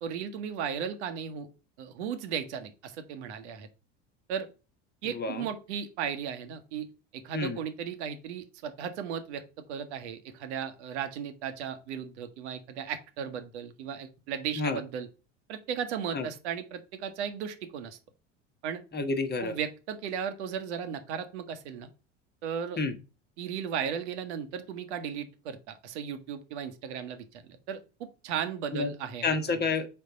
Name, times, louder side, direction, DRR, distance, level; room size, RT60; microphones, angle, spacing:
voice 1, 0.0-1.5 1.8-3.7 4.3-4.5 5.0-6.9 7.1-15.1 15.5-18.0 18.6-18.8 19.4-21.9 22.4-22.8 23.4-29.2, right 8 dB, 65° right, 8 dB, 1.1 m, -36 dB
voice 2, 5.0-5.4 7.3-7.6 14.6-14.8 16.1-16.3 18.9-19.6 22.8-23.0 28.7-28.9 29.2-29.9, left 4 dB, 25° left, 7 dB, 1.2 m, -29 dB
4.5 x 4.4 x 5.4 m, 0.32 s
figure-of-eight pair, 70°, 37 cm